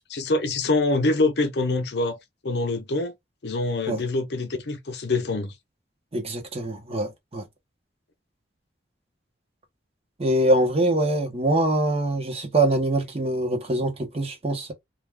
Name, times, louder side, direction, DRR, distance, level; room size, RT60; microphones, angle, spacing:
voice 1, 0.1-2.2 2.4-3.1 3.4-5.5, left 2 dB, 65° left, 0.6 m, -25 dB
voice 2, 6.1-7.4 10.2-14.7, right 1 dB, 35° right, 0.8 m, -24 dB
2.3 x 2.3 x 3.3 m
head